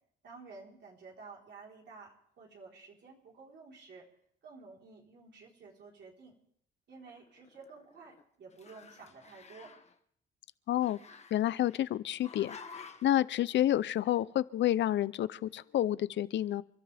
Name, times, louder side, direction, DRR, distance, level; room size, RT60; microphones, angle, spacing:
voice 1, 0.2-4.1 4.4-6.4 6.9-9.7, right 4 dB, 60° right, 4.1 m, -52 dB
Growling, 7.0-8.2 8.5-9.9 10.8-11.8 12.2-13.2, left 5 dB, 35° left, 1.4 m, -51 dB
voice 2, 10.7-11.0 11.3-12.6 13.0-16.6, left 12 dB, 65° left, 0.6 m, -29 dB
29.5 x 12.5 x 3.5 m
cardioid pair, 90°, 20 cm